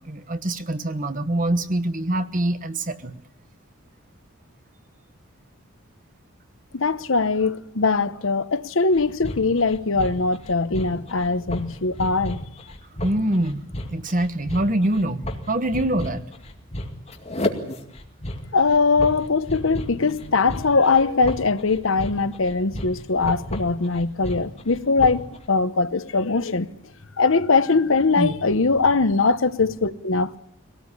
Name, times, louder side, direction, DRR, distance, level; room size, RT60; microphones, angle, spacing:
voice 1, 0.0-3.1 13.0-13.6 13.9-16.2 28.2-28.3, right 1 dB, 40° right, 1.2 m, -24 dB
voice 2, 6.7-12.4 18.5-26.7 27.2-30.4, left 4 dB, 70° left, 0.9 m, -21 dB
sound 1, 8.9-25.4, left 1 dB, 30° left, 2.2 m, -33 dB
23.0 x 18.0 x 9.8 m
head